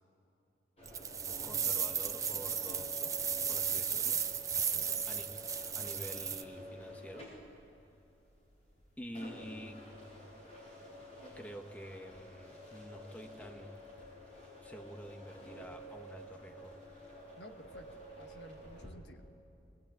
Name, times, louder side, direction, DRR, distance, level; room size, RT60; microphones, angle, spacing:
sound 1, 0.8-18.9, equal, 35° left, 6.3 m, -50 dB
sound 2, 0.9-6.4, right 7 dB, 20° right, 0.5 m, -35 dB
voice 1, 1.4-3.1 3.4-4.2 4.7-5.4 5.7-7.3 9.0-9.8 11.3-13.7 14.6-16.8, equal, 10° left, 5 dB, 1.0 m, -48 dB
voice 2, 4.7-5.1 17.4-19.2, left 1 dB, 65° left, 5 dB, 1.3 m, -54 dB
21.5 x 19.0 x 8.9 m, 2.6 s
head